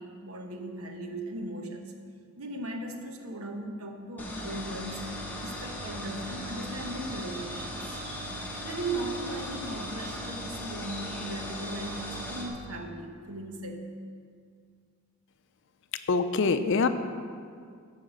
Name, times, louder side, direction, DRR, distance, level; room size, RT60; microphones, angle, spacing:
voice 1, 0.0-1.9 2.4-5.1 5.4-8.0 8.6-13.9, right 1 dB, 85° right, 4 dB, 1.0 m, -38 dB
sound 1, 4.2-12.5, equal, 10° left, 1.2 m, -38 dB
voice 2, 16.1-16.9, left 4 dB, 60° left, 10 dB, 0.5 m, -24 dB
8.9 x 5.6 x 6.4 m, 2.1 s
head